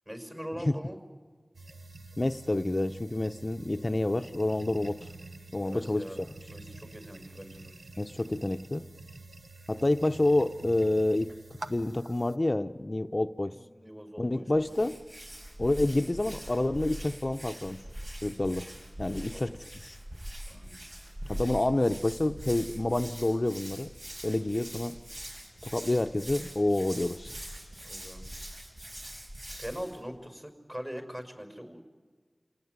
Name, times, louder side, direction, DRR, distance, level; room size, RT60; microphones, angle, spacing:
voice 1, 0.1-1.0 5.6-7.7 13.5-14.7 19.1-19.5 20.5-20.8 21.2-21.3 21.6-22.0 27.8-28.2 29.6-31.8, equal, 25° right, 6 dB, 5.7 m, -42 dB
sound 1, 1.5-12.4, right 2 dB, 85° right, 1.0 m, -48 dB
voice 2, 2.2-5.0 5.5-6.1 8.0-8.9 9.7-11.3 11.7-13.6 14.2-15.0 15.6-17.8 18.2-18.7 19.0-20.0 21.3-23.9 24.2-25.0 25.6-27.4, left 1 dB, 40° left, 8 dB, 0.7 m, -28 dB
Hands, 14.5-30.0, equal, 60° right, 7.9 m, -43 dB
29.0 x 18.5 x 9.5 m, 1.5 s
wide cardioid pair, 40°, 0 cm